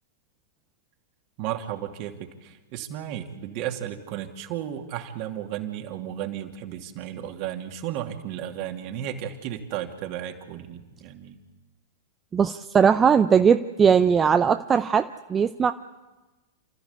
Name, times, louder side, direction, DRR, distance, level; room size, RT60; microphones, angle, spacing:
voice 1, 1.4-11.4, right 11 dB, 50° right, 4 dB, 2.6 m, -34 dB
voice 2, 12.3-15.7, right 7 dB, 20° right, 9 dB, 0.7 m, -19 dB
29.0 x 14.0 x 8.5 m, 1.2 s
figure-of-eight pair, 100°, 0 cm